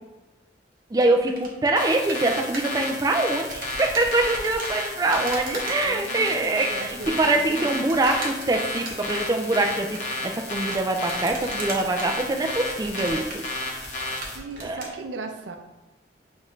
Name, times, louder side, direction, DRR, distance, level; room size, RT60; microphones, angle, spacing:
voice 1, 0.9-13.3 14.6-14.8, right 2 dB, 20° right, 3 dB, 0.3 m, -24 dB
sound 1, 0.9-15.0, right 1 dB, 50° right, 0.9 m, -40 dB
sound 2, 1.8-14.4, left 2 dB, 40° left, 0.8 m, -32 dB
voice 2, 5.8-7.8 12.9-13.1 14.3-15.6, right 3 dB, 70° right, 5 dB, 0.6 m, -37 dB
6.2 x 2.5 x 3.1 m, 1.1 s
head